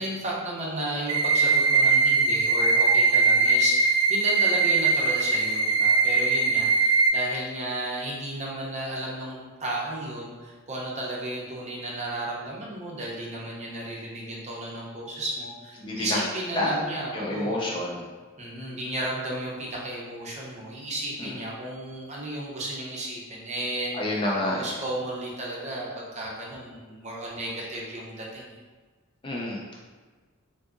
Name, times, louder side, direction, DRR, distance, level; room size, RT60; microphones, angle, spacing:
voice 1, 0.0-17.6 18.4-24.0 24.5-28.6, right 1 dB, 35° right, -4 dB, 0.6 m, -33 dB
sound 1, 1.1-7.1, right 4 dB, 75° right, 0.4 m, -21 dB
voice 2, 15.8-16.2 16.6-16.8 17.1-18.0 21.2-21.3 24.0-24.7 29.2-29.8, left 1 dB, 25° left, -4 dB, 0.4 m, -28 dB
3.5 x 2.7 x 2.4 m, 1.4 s
head